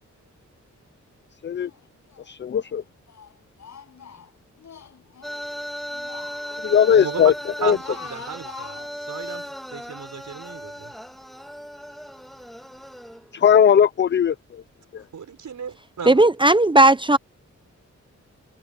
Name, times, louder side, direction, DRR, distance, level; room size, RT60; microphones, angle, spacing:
Speech, 1.6-2.3 2.6-5.4 5.8-7.3 7.7-9.5, left 7 dB, 65° left, 5.7 m, -45 dB
voice 1, 2.2-2.8 6.6-7.3 7.6-7.8 13.3-14.6 14.9-15.0, left 8 dB, 40° left, 0.4 m, -18 dB
sound 1, 5.2-13.3, equal, ahead, 2.1 m, -36 dB
voice 2, 6.9-7.3 7.6-10.9 15.0-16.2, right 7 dB, 80° right, 6.0 m, -35 dB
voice 3, 16.1-17.2, right 2 dB, 15° right, 0.6 m, -15 dB
cardioid pair, 85°, 30 cm